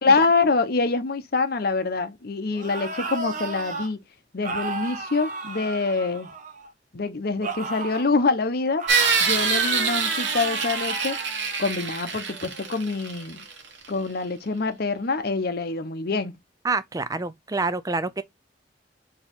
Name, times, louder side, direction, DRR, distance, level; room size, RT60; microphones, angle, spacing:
voice 1, 0.0-4.0 4.3-6.3 6.9-8.9 9.2-11.2 11.6-13.4 13.9-16.4, left 4 dB, 60° left, 0.8 m, -25 dB
sound 1, 2.5-3.9 4.4-6.7 7.4-8.1 8.8-11.3, right 3 dB, 50° right, 1.0 m, -34 dB
sound 2, 8.9-13.6, right 5 dB, 85° right, 1.2 m, -25 dB
voice 2, 16.6-18.2, right 3 dB, 20° right, 0.4 m, -27 dB
4.7 x 2.9 x 3.6 m
head